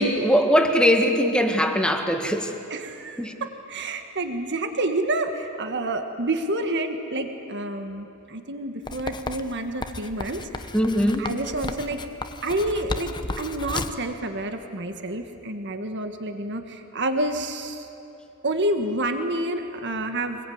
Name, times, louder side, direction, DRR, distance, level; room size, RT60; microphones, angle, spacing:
voice 1, 0.0-2.5 3.2-3.3 10.7-11.3, equal, 5° left, 4 dB, 1.6 m, -21 dB
voice 2, 2.7-10.4 11.2-12.0 12.4-17.9 18.4-20.4, right 1 dB, 55° right, 6 dB, 1.7 m, -28 dB
Writing, 8.9-14.1, left 2 dB, 20° left, 0.9 m, -34 dB
25.0 x 20.5 x 9.6 m, 2.7 s
head